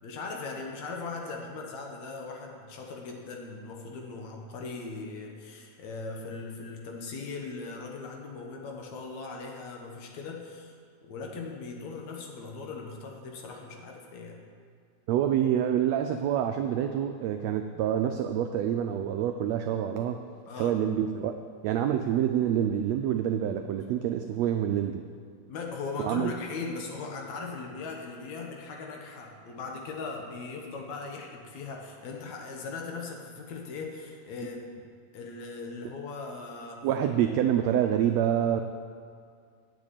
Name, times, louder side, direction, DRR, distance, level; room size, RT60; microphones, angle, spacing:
voice 1, 0.0-10.8 11.0-14.4 20.5-20.8 25.5-34.6 35.1-36.8, left 4 dB, 65° left, 1 dB, 2.5 m, -39 dB
voice 2, 15.1-20.2 20.6-21.4 21.6-25.0 26.0-26.3 36.8-38.6, right 10 dB, 85° right, 6 dB, 1.5 m, -27 dB
9.8 x 6.9 x 8.6 m, 2.2 s
omnidirectional pair, 3.6 m